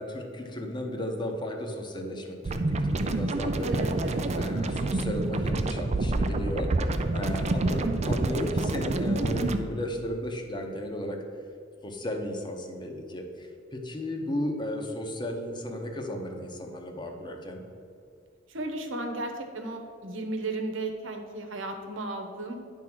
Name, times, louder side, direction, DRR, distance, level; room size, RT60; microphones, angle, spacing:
voice 1, 0.0-3.9 4.4-6.7 7.1-11.2 11.8-17.6, left 1 dB, 25° left, 3 dB, 0.9 m, -34 dB
sound 1, 2.4-9.6, right 2 dB, 35° right, 0.4 m, -27 dB
voice 2, 3.7-4.3 7.5-7.9 18.5-22.6, right 2 dB, 85° right, 4 dB, 1.0 m, -35 dB
9.9 x 3.6 x 6.1 m, 2.6 s
head